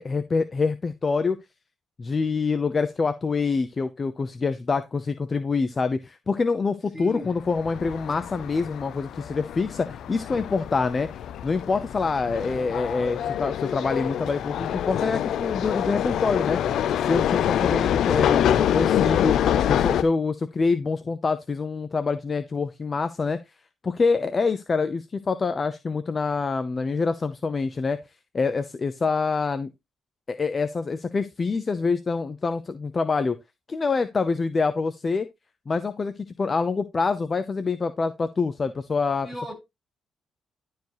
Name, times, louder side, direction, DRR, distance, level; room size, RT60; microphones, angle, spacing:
voice 1, 0.0-1.4 2.0-11.1 11.4-16.6 17.0-19.4 19.7-23.4 23.8-28.0 28.3-29.7 30.3-33.4 33.7-35.3 35.7-39.3, left 4 dB, 35° left, 0.7 m, -26 dB
voice 2, 6.9-7.3 39.2-39.5, equal, 10° left, 4.5 m, -36 dB
sound 1, 7.4-20.0, left 10 dB, 75° left, 0.6 m, -26 dB
11.5 x 4.6 x 3.1 m
cardioid pair, 90°, 0 cm